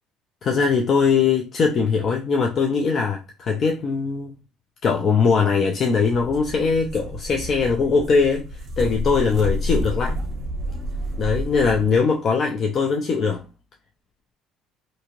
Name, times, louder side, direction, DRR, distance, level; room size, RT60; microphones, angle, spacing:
voice 1, 0.4-4.3 4.8-8.5 8.8-10.2 11.2-13.4, left 5 dB, 45° left, 0.4 m, -21 dB
sound 1, 6.1-12.0, equal, 45° right, 0.7 m, -29 dB
2.6 x 2.3 x 3.0 m
cardioid pair, 110°, 0 cm